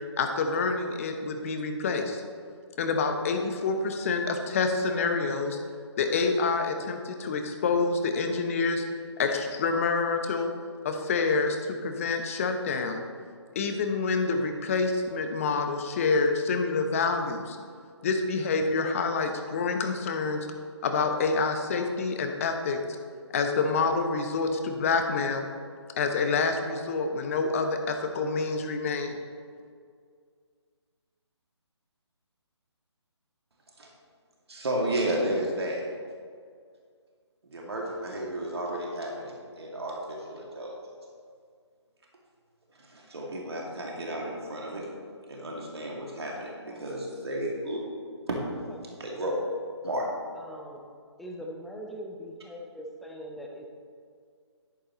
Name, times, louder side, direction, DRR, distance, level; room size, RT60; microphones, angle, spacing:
voice 1, 0.2-2.2 2.8-5.6 6.0-8.8 9.2-10.5 10.8-13.0 13.5-17.6 18.0-20.5 20.8-22.8 23.3-25.5 26.0-29.1, left 4 dB, 30° left, 5 dB, 0.9 m, -27 dB
voice 2, 34.5-35.8 37.4-40.8 42.7-44.8 45.3-47.8 48.3-48.4 49.0-49.3 49.8-50.1, right 1 dB, 60° right, -2 dB, 2.2 m, -32 dB
voice 3, 46.7-47.0 48.4-49.4 50.4-50.9 51.2-53.7, equal, ahead, 0 dB, 0.4 m, -42 dB
11.5 x 11.0 x 3.0 m, 2.1 s
figure-of-eight pair, 145°, 15 cm